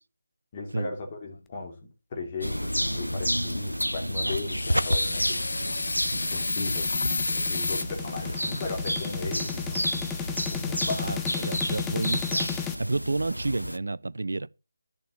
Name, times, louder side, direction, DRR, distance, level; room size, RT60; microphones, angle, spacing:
voice 1, 0.5-5.5 6.3-11.5, left 3 dB, 30° left, 3.1 m, -37 dB
sound 1, 2.4-13.8, equal, 90° left, 0.7 m, -30 dB
sound 2, 4.5-7.8, left 3 dB, 60° left, 0.8 m, -30 dB
sound 3, 4.6-12.7, left 11 dB, 10° left, 0.5 m, -36 dB
voice 2, 11.0-14.5, right 2 dB, 60° right, 0.5 m, -31 dB
11.5 x 6.9 x 6.3 m
figure-of-eight pair, 155°, 0 cm